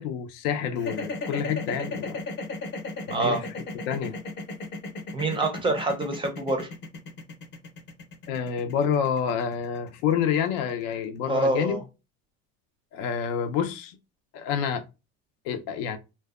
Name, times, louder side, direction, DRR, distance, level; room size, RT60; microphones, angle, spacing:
voice 1, 0.0-2.2 3.1-3.4 3.9-4.1 8.3-11.8 12.9-14.0 14.3-14.8 15.4-16.0, left 8 dB, 75° left, 0.6 m, -28 dB
sound 1, 0.8-10.9, left 3 dB, 35° left, 0.7 m, -35 dB
voice 2, 3.1-3.4 5.1-6.7 11.3-11.8, right 2 dB, 15° right, 0.5 m, -26 dB
2.6 x 2.1 x 2.3 m
supercardioid pair, 125°, 31 cm